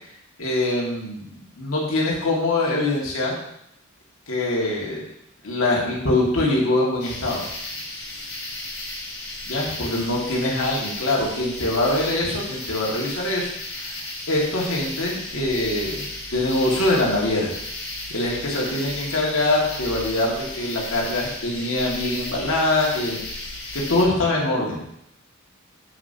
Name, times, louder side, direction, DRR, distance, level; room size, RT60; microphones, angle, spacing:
voice 1, 0.4-3.3 4.3-5.0 5.4-7.4 9.4-13.5 13.9-14.0 14.3-16.0 16.3-17.5 18.1-23.2 23.7-24.8, left 2 dB, 80° left, -3 dB, 2.0 m, -23 dB
sound 1, 7.0-24.0, left 2 dB, 55° left, 2.1 m, -34 dB
7.1 x 6.7 x 2.8 m, 0.75 s
head